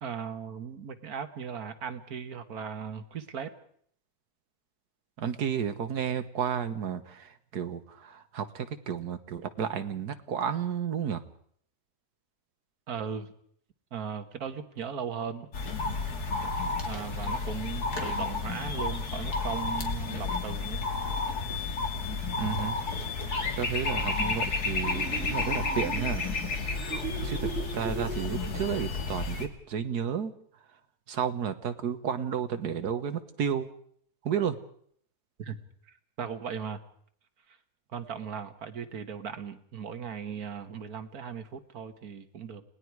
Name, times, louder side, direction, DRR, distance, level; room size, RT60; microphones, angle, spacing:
voice 1, 0.0-3.5 12.9-13.3 13.9-15.5 16.8-20.9 35.4-36.8 37.5-37.6 37.9-42.6, right 7 dB, 70° right, 10 dB, 1.9 m, -38 dB
voice 2, 5.2-11.2 22.4-22.8 23.6-26.2 27.2-30.3 31.1-33.7 34.2-34.6, right 8 dB, 85° right, 10 dB, 1.8 m, -32 dB
sound 1, 15.5-29.5, left 3 dB, 80° left, 2.7 m, -31 dB
sound 2, 24.9-28.9, right 6 dB, 50° right, 1.4 m, -39 dB
30.0 x 19.5 x 4.7 m, 0.62 s
omnidirectional pair, 1.6 m